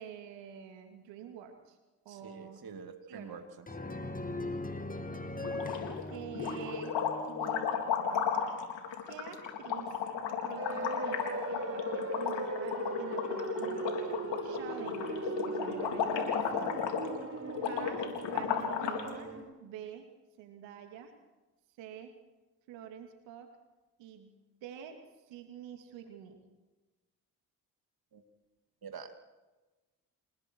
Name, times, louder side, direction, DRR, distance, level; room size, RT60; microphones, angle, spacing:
voice 1, 0.0-1.8 2.0-2.6 3.1-3.4 5.1-5.2 6.1-7.0 7.3-8.5 9.1-10.0 10.4-13.8 14.4-16.9 17.7-20.1 20.4-21.1 21.8-22.1 22.7-23.5 24.0-25.0 25.3-26.4, right 9 dB, 85° right, 5 dB, 2.8 m, -47 dB
voice 2, 2.1-3.7 28.1-28.2 28.8-29.1, right 5 dB, 55° right, 6 dB, 2.6 m, -46 dB
sound 1, 3.7-7.8, left 2 dB, 20° left, 2.5 m, -40 dB
sound 2, 5.4-6.0 6.3-19.1, left 7 dB, 75° left, 4.0 m, -34 dB
sound 3, 10.6-19.4, right 3 dB, 30° right, 4.6 m, -39 dB
28.5 x 19.5 x 4.7 m, 1.1 s
hypercardioid pair, 45°, 44 cm